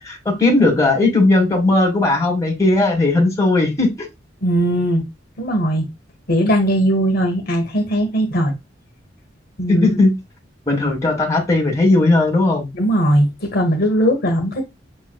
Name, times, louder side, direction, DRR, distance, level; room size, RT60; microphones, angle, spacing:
voice 1, 0.0-4.1 9.7-10.2 10.7-12.7, left 2 dB, 15° left, 1.5 m, -17 dB
voice 2, 4.4-5.0 5.4-5.9 6.3-8.5 9.6-9.9 12.7-14.6, right 1 dB, 55° left, 1.2 m, -18 dB
7.1 x 3.1 x 2.2 m
head